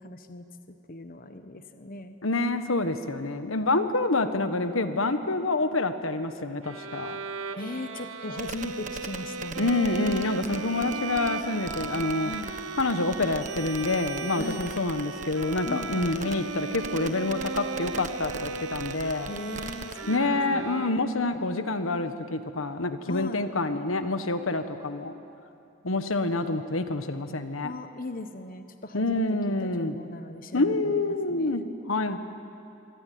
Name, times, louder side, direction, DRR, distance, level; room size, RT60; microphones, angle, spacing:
voice 1, 0.0-2.1 7.5-9.8 12.2-12.5 14.4-14.7 15.7-16.1 19.3-21.2 23.1-23.4 27.6-31.7, left 2 dB, 45° left, 8 dB, 1.2 m, -39 dB
voice 2, 2.2-7.2 9.6-12.3 12.8-19.3 20.1-25.1 25.8-27.7 28.9-29.9 30.5-31.6 31.9-32.2, left 2 dB, 80° left, 9 dB, 1.4 m, -27 dB
Bowed string instrument, 6.6-21.3, right 4 dB, 85° right, 1.2 m, -37 dB
sound 1, 8.4-20.2, right 4 dB, 35° right, 1.4 m, -41 dB
26.5 x 23.5 x 9.4 m, 2.7 s
head